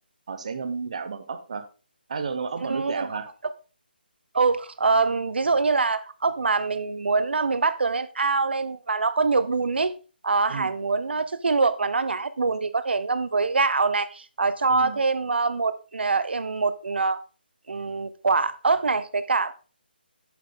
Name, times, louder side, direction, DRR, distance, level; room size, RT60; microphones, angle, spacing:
voice 1, 0.3-1.7 2.1-3.3 10.5-10.7 14.7-15.0, right 5 dB, 40° right, 0.9 m, -32 dB
voice 2, 2.6-3.1 4.3-9.9 10.2-17.2 17.7-19.5, right 4 dB, 85° right, 0.7 m, -24 dB
7.8 x 7.5 x 3.8 m
hypercardioid pair, 175°, 6 cm